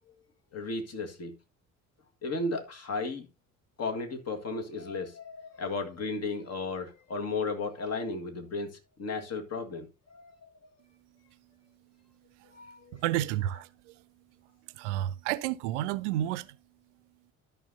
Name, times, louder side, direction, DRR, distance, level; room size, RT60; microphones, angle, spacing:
voice 1, 0.5-1.3 2.2-3.3 3.8-9.9 10.1-10.3 12.5-13.0, left 3 dB, 40° left, 1.9 m, -34 dB
voice 2, 12.3-14.3 14.6-16.6, right 13 dB, 65° right, 0.6 m, -32 dB
13.0 x 6.1 x 2.7 m
figure-of-eight pair, 50°, 39 cm